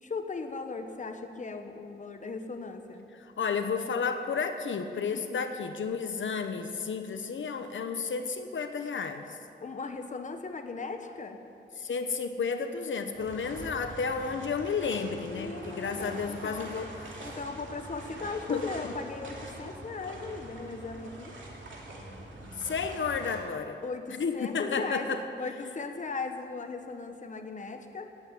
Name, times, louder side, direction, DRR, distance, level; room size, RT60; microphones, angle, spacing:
voice 1, 0.0-3.1 4.9-5.4 9.6-11.4 15.3-16.7 17.2-21.4 23.8-25.1 25.4-28.1, left 4 dB, 40° left, 6 dB, 1.0 m, -38 dB
voice 2, 3.4-9.2 11.8-16.9 18.5-18.9 22.6-23.8 24.2-25.2, left 5 dB, 85° left, 7 dB, 0.9 m, -32 dB
sound 1, 13.1-23.4, right 1 dB, 80° right, 2.7 m, -44 dB
17.5 x 8.6 x 8.3 m, 2.6 s
wide cardioid pair, 150°, 19 cm